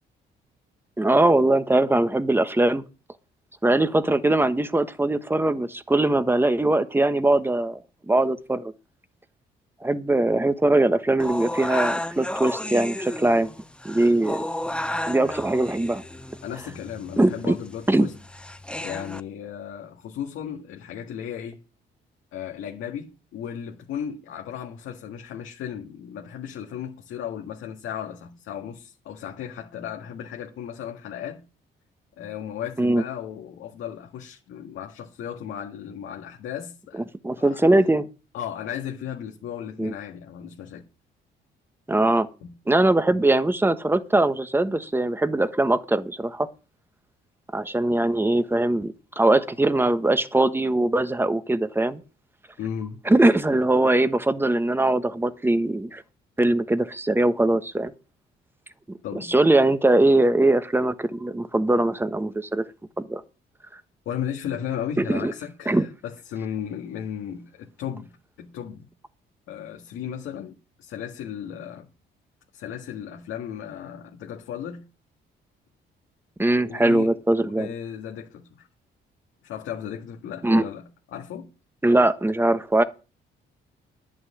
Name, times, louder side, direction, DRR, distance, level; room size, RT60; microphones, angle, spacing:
voice 1, 1.0-2.8 3.6-7.8 8.1-8.6 9.8-13.5 13.8-14.4 15.1-16.0 17.2-17.6 17.9-18.1 32.8-33.0 37.2-38.1 39.8-39.9 41.9-42.3 42.7-46.5 47.5-52.0 53.1-56.0 56.4-57.9 58.9-59.0 59.3-62.6 63.0-63.2 65.0-65.3 65.7-65.9 76.4-77.7 80.4-80.6 81.8-82.8, right 2 dB, 10° right, 1.2 m, -21 dB
sound 1, 11.2-19.2, left 1 dB, 5° left, 0.8 m, -32 dB
voice 2, 16.4-18.1 18.8-21.6 22.3-31.4 32.2-37.1 37.4-37.7 38.3-40.8 42.4-42.5 52.6-53.0 59.0-59.3 64.1-68.9 69.5-71.9 72.5-74.8 76.6-77.1 77.4-78.7 79.4-81.5, left 9 dB, 85° left, 1.9 m, -35 dB
11.0 x 6.3 x 8.7 m
cardioid pair, 90°, 20 cm